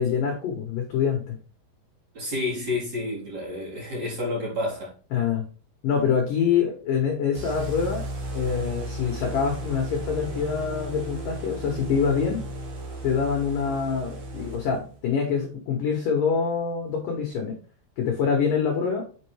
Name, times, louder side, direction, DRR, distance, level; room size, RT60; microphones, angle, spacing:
voice 1, 0.0-1.4 5.1-5.4 5.8-8.0 8.3-12.4 13.0-17.6 18.0-19.0, left 6 dB, 75° left, 2.0 m, -25 dB
voice 2, 2.1-4.9, left 2 dB, 35° right, 4.5 m, -29 dB
sound 1, 7.3-15.0, right 1 dB, 55° right, 3.1 m, -35 dB
8.3 x 5.5 x 3.4 m
omnidirectional pair, 6.0 m